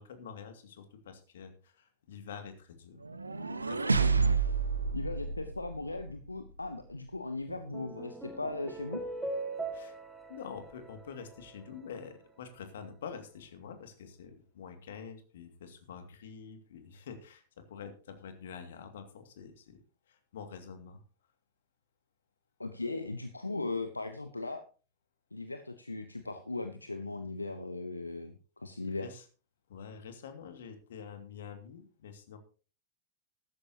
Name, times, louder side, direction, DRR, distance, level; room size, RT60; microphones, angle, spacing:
voice 1, 0.0-3.0 3.6-4.0 9.7-10.0 10.3-17.4 17.7-19.8 20.1-21.0 28.9-29.2 29.7-32.4, left 6 dB, 60° left, 8 dB, 2.2 m, -47 dB
sound 1, 3.0-6.2, right 5 dB, 80° right, 0.9 m, -29 dB
voice 2, 4.9-9.0 22.6-24.6 25.3-29.1, left 2 dB, 80° left, 9 dB, 0.8 m, -38 dB
sound 2, 7.5-12.1, right 2 dB, 10° right, 1.9 m, -41 dB
14.5 x 13.0 x 2.9 m, 0.37 s
figure-of-eight pair, 90°, 0 cm